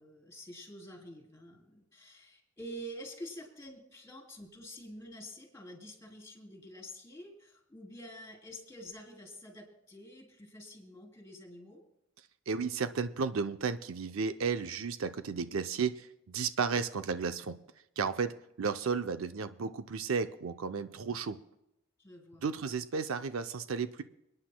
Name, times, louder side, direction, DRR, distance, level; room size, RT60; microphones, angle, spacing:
voice 1, 0.0-11.8 22.0-22.4, equal, 15° left, 0 dB, 3.6 m, -48 dB
voice 2, 12.5-17.6 18.0-18.3 18.6-21.4 22.4-24.0, right 5 dB, 90° right, 10 dB, 0.6 m, -33 dB
29.5 x 9.8 x 2.2 m, 0.84 s
head